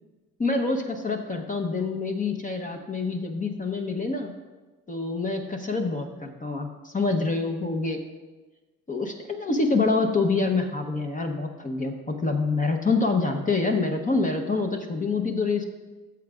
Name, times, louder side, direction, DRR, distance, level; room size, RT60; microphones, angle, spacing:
voice 1, 0.4-4.3 4.9-8.0 8.9-15.6, left 3 dB, 20° left, 3 dB, 0.8 m, -26 dB
14.0 x 7.2 x 2.4 m, 1.2 s
supercardioid pair, 90°, 39 cm